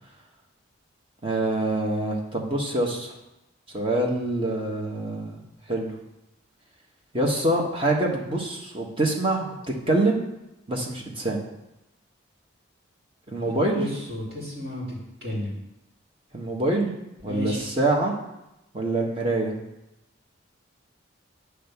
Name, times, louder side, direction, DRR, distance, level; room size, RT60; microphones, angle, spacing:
voice 1, 1.2-3.1 3.7-5.4 5.7-5.9 7.1-9.5 9.9-10.3 10.7-11.4 13.3-13.9 16.3-16.9 17.2-18.1 18.7-19.5, right 2 dB, 25° right, -1 dB, 1.4 m, -25 dB
voice 2, 13.4-14.8 15.2-15.5 17.3-17.6, left 1 dB, 50° right, -5 dB, 3.0 m, -32 dB
9.8 x 3.5 x 6.9 m, 0.92 s
head